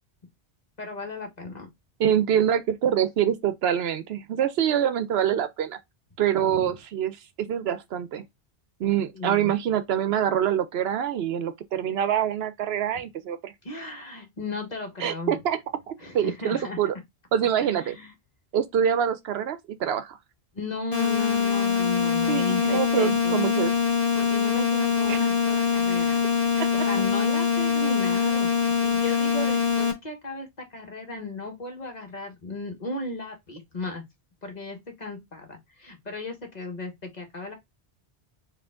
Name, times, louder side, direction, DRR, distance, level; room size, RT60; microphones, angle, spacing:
voice 1, 0.8-1.7 6.5-6.7 9.1-9.5 13.6-15.4 16.0-16.8 17.6-18.1 20.5-23.4 24.1-26.2 26.7-34.0 34.4-37.5, left 2 dB, 40° left, 1.3 m, -36 dB
voice 2, 2.0-5.8 6.2-8.2 8.8-13.5 15.0-15.6 15.9-16.9 17.3-18.0 18.5-20.2 22.3-23.7 25.1-25.2 26.6-26.7, right 9 dB, 75° right, 0.8 m, -25 dB
sound 1, 20.9-29.9, left 6 dB, 55° left, 1.4 m, -23 dB
4.7 x 2.8 x 3.6 m
omnidirectional pair, 1.1 m